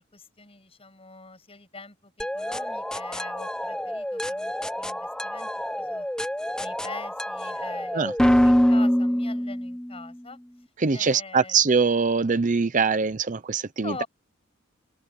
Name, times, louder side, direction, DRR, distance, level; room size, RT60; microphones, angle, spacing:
voice 1, 0.0-6.1 6.6-10.4 10.9-11.6 13.8-14.1, left 3 dB, 30° left, 7.6 m, -43 dB
sound 1, 2.2-10.0, equal, 5° left, 0.6 m, -25 dB
voice 2, 10.8-14.0, right 5 dB, 40° right, 0.6 m, -23 dB
head